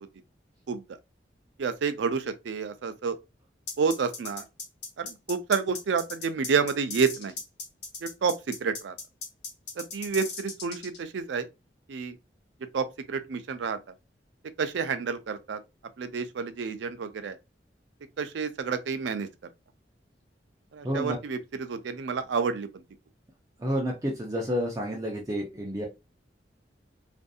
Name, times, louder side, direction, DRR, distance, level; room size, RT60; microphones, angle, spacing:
voice 1, 1.6-3.2 3.8-4.4 5.0-7.3 8.0-8.9 9.8-11.5 11.9-12.2 12.7-13.8 14.6-15.6 16.0-17.4 18.2-19.3 20.7-22.7, right 5 dB, 90° right, 0.4 m, -29 dB
sound 1, 3.7-11.0, left 4 dB, 80° left, 0.9 m, -38 dB
voice 2, 20.8-21.2 23.6-25.9, equal, 20° right, 0.5 m, -30 dB
2.6 x 2.5 x 2.3 m
head